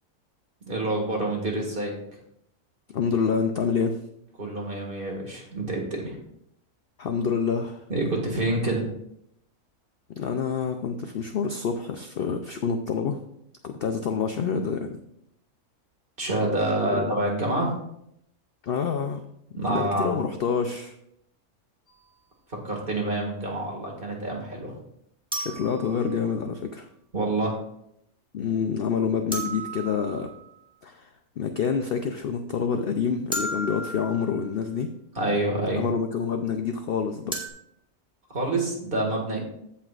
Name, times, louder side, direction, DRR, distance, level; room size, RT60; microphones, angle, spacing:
voice 1, 0.7-1.9 4.4-6.2 7.9-8.9 16.2-17.7 19.6-20.1 22.5-24.7 27.1-27.6 35.2-35.8 38.3-39.4, right 1 dB, 40° right, 0 dB, 2.0 m, -27 dB
voice 2, 2.9-4.0 7.0-7.8 10.1-13.2 13.6-15.0 16.8-17.1 18.6-19.2 19.7-20.9 25.3-26.9 28.3-30.3 30.8-31.1 31.4-34.9 35.8-37.4, left 6 dB, 65° left, 6 dB, 0.6 m, -27 dB
sound 1, 21.9-22.0 25.3-26.6 29.3-30.7 33.3-34.5 37.3-37.5, right 1 dB, 5° right, 1.5 m, -34 dB
15.5 x 5.7 x 2.4 m, 0.76 s
omnidirectional pair, 1.5 m